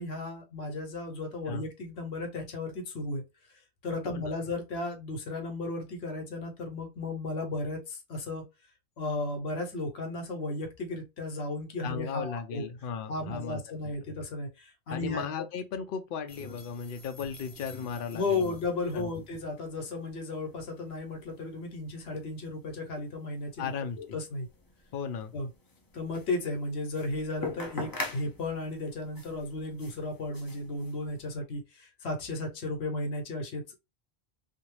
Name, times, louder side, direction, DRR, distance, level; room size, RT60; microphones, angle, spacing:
voice 1, 0.0-3.2 3.8-8.4 9.0-12.6 13.1-15.2 18.1-23.7 24.0-24.5 25.3-25.5 25.9-33.8, left 2 dB, 85° left, 1.0 m, -34 dB
voice 2, 11.8-13.9 14.9-18.6 18.9-19.1 23.6-24.2 24.9-25.3, left 6 dB, 65° left, 0.7 m, -36 dB
sound 1, 16.3-31.3, left 2 dB, 30° left, 0.4 m, -46 dB
2.5 x 2.2 x 3.1 m
omnidirectional pair, 1.1 m